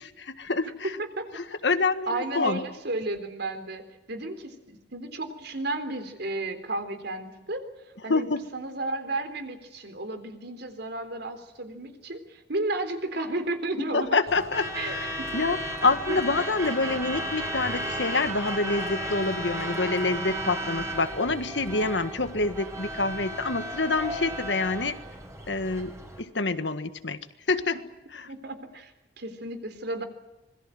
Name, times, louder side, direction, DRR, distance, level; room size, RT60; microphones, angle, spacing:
voice 1, 0.0-0.9 1.4-2.6 8.1-8.4 13.9-15.6 15.8-25.0 25.5-27.2 27.5-27.8 28.1-28.2, left 3 dB, 70° left, 11 dB, 1.7 m, -27 dB
voice 2, 2.1-7.6 8.0-14.2 14.7-15.5 16.1-16.2 28.3-28.9 29.2-30.0, right 2 dB, 65° right, 9 dB, 3.8 m, -33 dB
Truck / Alarm, 14.3-26.2, right 1 dB, 15° right, 4.5 m, -34 dB
26.0 x 21.5 x 7.8 m, 1.0 s
head